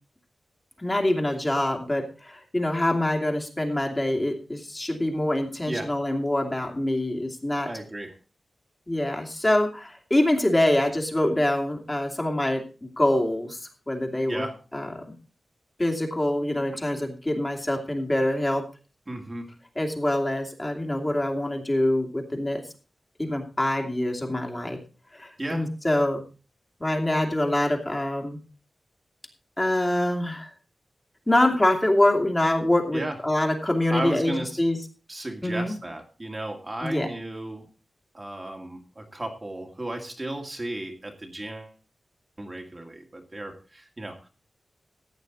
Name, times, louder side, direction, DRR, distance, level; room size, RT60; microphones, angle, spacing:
voice 1, 0.8-7.7 8.9-13.6 13.9-14.5 14.7-15.0 15.8-18.6 19.8-22.6 23.2-24.8 25.1-26.2 26.8-28.4 29.6-30.5 31.3-34.3 34.6-34.8 35.4-35.7 36.8-37.1, left 1 dB, 20° left, 1 dB, 2.6 m, -25 dB
voice 2, 7.6-8.2 14.3-14.6 19.1-19.5 25.4-25.7 32.9-33.2 33.9-34.6 35.1-37.6 38.1-41.7 42.4-44.3, right 1 dB, 25° right, 2 dB, 2.1 m, -34 dB
15.0 x 9.4 x 4.0 m, 0.35 s
wide cardioid pair, 115°, 0 cm